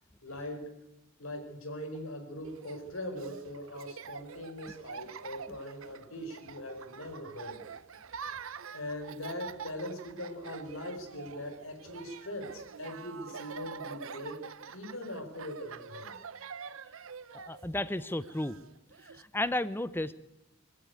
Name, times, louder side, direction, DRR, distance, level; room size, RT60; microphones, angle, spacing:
voice 1, 0.2-0.7 1.2-7.6 8.7-14.4 14.7-16.2, left 1 dB, 70° left, 6 dB, 4.4 m, -41 dB
Laughter, 2.4-19.2, right 6 dB, 70° right, 0.8 m, -46 dB
voice 2, 17.3-18.6 19.0-20.1, left 1 dB, 10° left, 15 dB, 0.6 m, -33 dB
20.5 x 15.0 x 9.5 m, 0.92 s
head